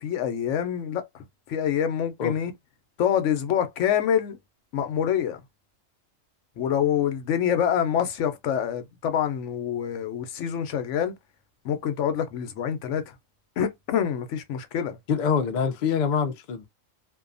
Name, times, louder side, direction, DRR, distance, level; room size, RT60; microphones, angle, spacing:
voice 1, 0.0-2.5 3.0-4.4 4.7-5.4 6.6-11.1 11.6-13.1 13.6-15.0, left 9 dB, 70° left, 0.9 m, -26 dB
voice 2, 15.1-16.7, left 6 dB, 90° left, 0.4 m, -25 dB
2.6 x 2.2 x 2.5 m
omnidirectional pair, 1.4 m